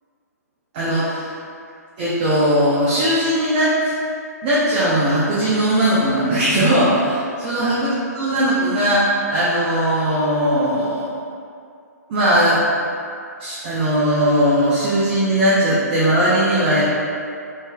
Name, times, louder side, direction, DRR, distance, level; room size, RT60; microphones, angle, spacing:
voice 1, 0.7-1.3 2.0-3.8 4.4-7.8 8.1-11.2 12.1-12.6 13.4-16.8, equal, 35° right, -9 dB, 0.5 m, -18 dB
3.1 x 2.7 x 2.2 m, 2.4 s
figure-of-eight pair, 125°, 9 cm